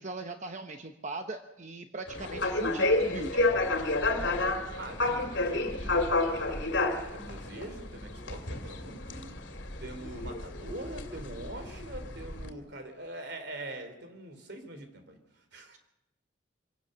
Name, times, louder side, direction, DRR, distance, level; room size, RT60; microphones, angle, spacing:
voice 1, 0.0-3.4, right 2 dB, 40° right, 6 dB, 1.0 m, -40 dB
sound 1, 2.1-12.5, left 2 dB, 70° left, 2.5 m, -30 dB
voice 2, 4.8-6.7 7.1-9.3 9.8-15.8, right 1 dB, 60° right, 8 dB, 3.5 m, -44 dB
25.5 x 17.5 x 6.8 m, 0.88 s
head